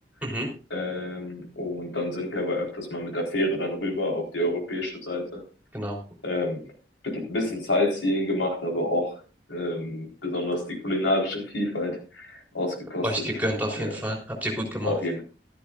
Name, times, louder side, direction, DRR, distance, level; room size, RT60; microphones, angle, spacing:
voice 1, 0.7-5.4 6.2-6.6 7.0-9.2 9.5-13.3 13.7-14.0 14.8-15.2, left 1 dB, 85° left, 0 dB, 4.2 m, -28 dB
voice 2, 13.0-14.9, equal, 10° right, -1 dB, 3.7 m, -29 dB
15.0 x 13.0 x 2.5 m, 0.36 s
head